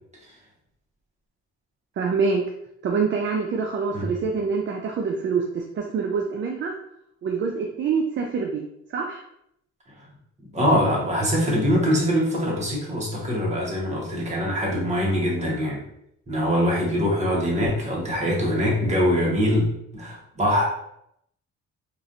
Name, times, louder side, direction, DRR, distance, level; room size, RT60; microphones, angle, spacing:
voice 1, 2.0-2.4 2.8-6.7 7.2-9.2, right 5 dB, 40° right, 2 dB, 0.4 m, -25 dB
voice 2, 10.5-15.8 16.3-19.6 19.9-20.6, equal, 25° right, -4 dB, 1.2 m, -23 dB
3.1 x 2.5 x 2.5 m, 0.75 s
cardioid pair, 90°, 30 cm